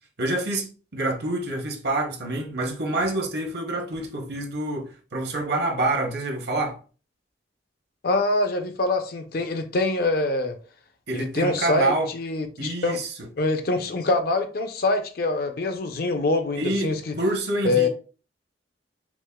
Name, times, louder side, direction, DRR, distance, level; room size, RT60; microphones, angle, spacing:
voice 1, 0.2-6.8 11.1-12.1 12.6-13.1 16.5-17.9, right 2 dB, 60° right, 0.9 m, -27 dB
voice 2, 8.0-10.5 11.1-13.0 13.4-17.1 17.6-17.9, left 2 dB, 55° left, 0.5 m, -24 dB
6.0 x 2.0 x 2.2 m
head